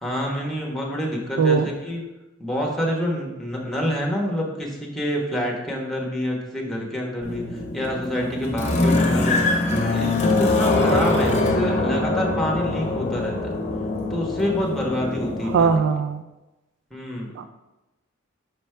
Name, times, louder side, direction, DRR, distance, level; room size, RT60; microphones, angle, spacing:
voice 1, 0.0-2.0 2.4-13.6 14.1-15.9 16.9-17.3, equal, ahead, -2 dB, 1.0 m, -27 dB
voice 2, 1.4-1.7 15.4-16.2 17.3-17.5, right 5 dB, 60° right, 8 dB, 0.3 m, -20 dB
sound 1, 7.2-15.8, left 2 dB, 35° left, 0.7 m, -23 dB
5.6 x 5.2 x 3.3 m, 1.0 s
head